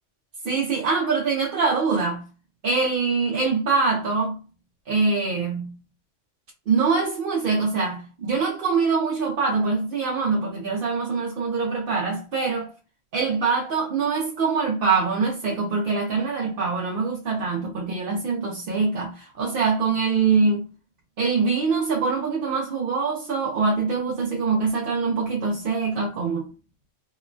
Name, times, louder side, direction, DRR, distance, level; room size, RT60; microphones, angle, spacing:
voice 1, 0.4-2.2 2.6-4.4 4.9-5.7 6.7-12.7 13.1-20.7 21.2-26.5, right 4 dB, 55° right, 0.7 m, -24 dB
2.9 x 2.1 x 2.4 m
omnidirectional pair, 1.3 m